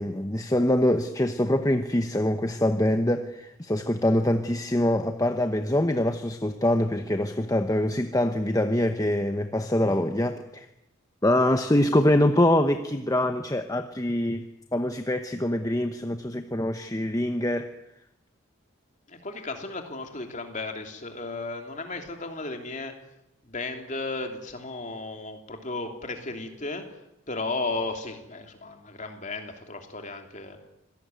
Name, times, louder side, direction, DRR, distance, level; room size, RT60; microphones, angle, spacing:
voice 1, 0.0-10.7 11.2-14.4 14.7-17.7, left 1 dB, 15° left, 7 dB, 0.9 m, -24 dB
voice 2, 19.1-22.9 23.5-26.9 27.3-30.6, left 3 dB, 35° left, 4 dB, 3.1 m, -34 dB
26.0 x 18.0 x 9.2 m, 0.85 s
head